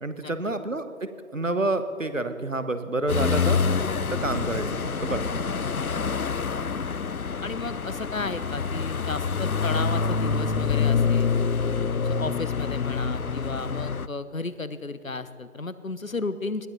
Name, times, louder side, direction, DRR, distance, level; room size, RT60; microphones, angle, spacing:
voice 1, 0.0-3.6 4.1-5.3, right 2 dB, 65° right, 10 dB, 1.4 m, -29 dB
sound 1, 3.1-14.1, left 5 dB, 85° left, 0.7 m, -26 dB
voice 2, 5.8-6.3 7.4-11.4 11.9-16.7, left 3 dB, 70° left, 14 dB, 1.0 m, -33 dB
20.5 x 14.0 x 4.1 m, 2.7 s
figure-of-eight pair, 170°, 42 cm